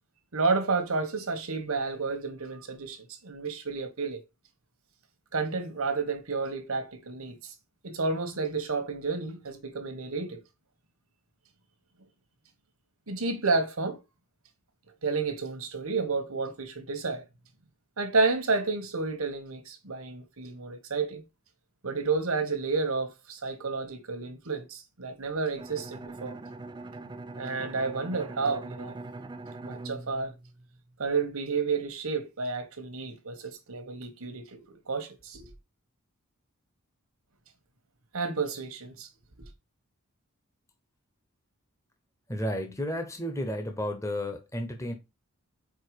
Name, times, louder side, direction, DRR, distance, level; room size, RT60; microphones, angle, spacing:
voice 1, 0.3-4.2 5.3-7.5 7.8-10.4 13.1-14.0 15.0-17.2 18.0-21.2 21.8-26.4 27.4-29.0 29.6-30.3 31.0-35.5 38.1-39.1, right 4 dB, 70° right, 1.2 m, -31 dB
Bowed string instrument, 25.6-31.2, right 2 dB, 20° right, 0.3 m, -42 dB
voice 2, 42.3-44.9, left 1 dB, 15° left, 0.8 m, -32 dB
4.8 x 4.4 x 4.7 m
head